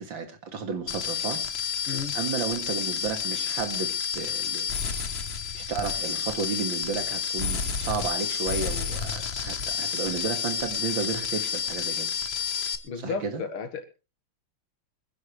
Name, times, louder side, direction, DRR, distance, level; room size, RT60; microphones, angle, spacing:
voice 1, 0.0-1.4 2.1-4.7 5.5-12.1 13.0-13.4, right 5 dB, 65° right, 2.7 m, -32 dB
sound 1, 0.9-12.8, left 7 dB, 40° left, 1.0 m, -30 dB
voice 2, 1.9-2.2 12.8-13.8, left 5 dB, 90° left, 2.6 m, -33 dB
25.5 x 10.5 x 3.3 m
omnidirectional pair, 2.3 m